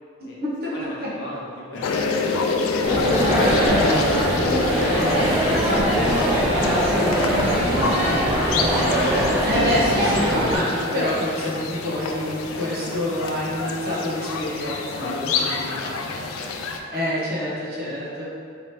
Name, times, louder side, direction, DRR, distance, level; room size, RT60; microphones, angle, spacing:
voice 1, 0.2-1.1 3.0-4.9 6.6-7.2 9.4-15.9 16.9-18.2, left 1 dB, 50° right, -7 dB, 1.0 m, -27 dB
voice 2, 0.7-2.2 4.5-6.1 7.3-7.9 12.5-12.6 15.0-17.2 17.8-18.0, left 1 dB, 60° left, -4 dB, 0.7 m, -36 dB
sound 1, 1.8-16.8, left 4 dB, 85° left, 0.3 m, -27 dB
sound 2, 2.8-10.6, right 1 dB, 25° right, 0.8 m, -21 dB
3.8 x 2.9 x 3.2 m, 2.3 s
head